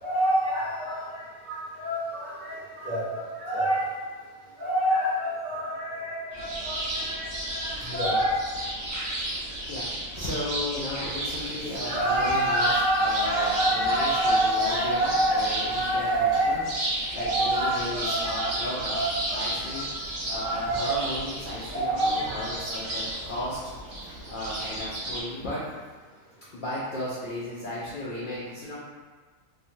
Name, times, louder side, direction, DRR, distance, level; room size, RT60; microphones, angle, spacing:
voice 1, 0.0-1.1 1.4-3.9 4.6-8.4 11.8-16.6 17.2-18.5 18.9-19.8 20.3-21.0 21.7-22.4, right 1 dB, 40° right, -9 dB, 1.0 m, -27 dB
sound 1, 6.3-25.2, right 1 dB, 75° right, 1.3 m, -33 dB
voice 2, 7.6-8.2 9.7-9.9 10.1-16.6 17.1-19.0 19.3-23.6 24.0-25.6 26.5-28.7, left 1 dB, 70° left, -7 dB, 0.5 m, -35 dB
3.1 x 2.1 x 2.6 m, 1.4 s
omnidirectional pair, 1.4 m